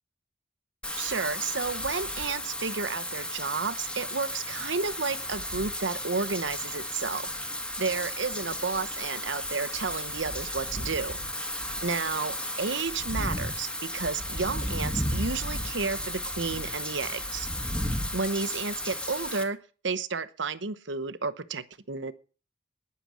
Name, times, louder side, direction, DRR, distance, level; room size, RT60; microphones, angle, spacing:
Wind / Rain, 0.8-19.4, left 1 dB, 5° left, 1.8 m, -34 dB
voice 1, 1.0-7.3 7.8-11.2 11.8-17.5 18.1-19.6 19.8-22.1, right 4 dB, 75° right, 12 dB, 1.0 m, -32 dB
19.5 x 6.9 x 6.3 m, 0.39 s
head